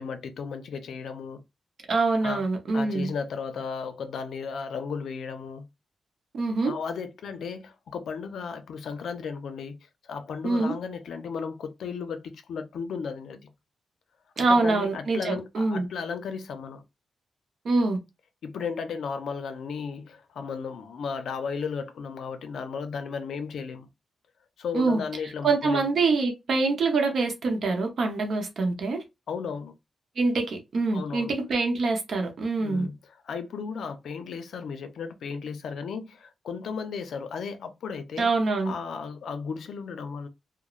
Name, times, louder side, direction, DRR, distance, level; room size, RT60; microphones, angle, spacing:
voice 1, 0.0-1.4 2.2-2.4 2.7-5.7 6.6-13.5 14.4-16.8 18.4-23.9 24.6-25.8 29.3-29.7 30.9-31.4 32.6-33.0 33.2-38.3 38.6-40.3, left 5 dB, 85° left, 0.5 m, -35 dB
voice 2, 1.9-3.1 6.3-6.7 10.4-10.7 14.4-15.9 17.6-18.0 24.7-25.0 25.4-29.0 30.2-32.9 38.2-38.7, right 3 dB, 60° right, 0.7 m, -25 dB
3.0 x 2.0 x 2.4 m
wide cardioid pair, 155°, 0 cm